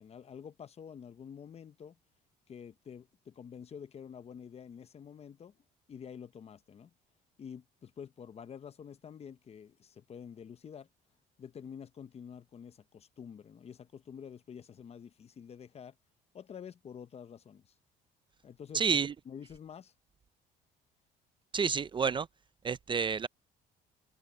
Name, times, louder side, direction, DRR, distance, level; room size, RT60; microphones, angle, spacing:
voice 1, 0.0-2.0 2.5-5.6 5.9-6.9 7.4-10.9 11.4-16.0 16.3-17.7 18.4-18.8 19.3-19.9, left 7 dB, 40° left, 0.9 m, -48 dB
voice 2, 18.7-19.1 21.5-22.3 22.6-23.3, right 6 dB, 30° right, 0.5 m, -29 dB
cardioid pair, 110°, 17 cm